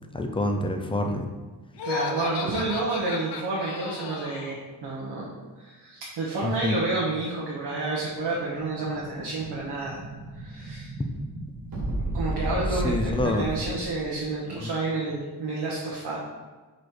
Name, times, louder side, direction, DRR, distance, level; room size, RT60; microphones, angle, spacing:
voice 1, 0.1-1.3 6.4-6.8 12.7-13.5 14.6-14.7, left 2 dB, 15° left, 5 dB, 0.4 m, -27 dB
Laughter, 1.7-4.6, left 6 dB, 85° left, 0.7 m, -34 dB
voice 2, 1.8-5.3 5.6-10.0 10.3-10.9 12.1-16.2, right 3 dB, 85° right, -6 dB, 1.2 m, -30 dB
Explosion, 8.0-14.1, right 1 dB, 60° right, 1.7 m, -34 dB
5.0 x 4.2 x 4.5 m, 1.3 s
wide cardioid pair, 160°, 40 cm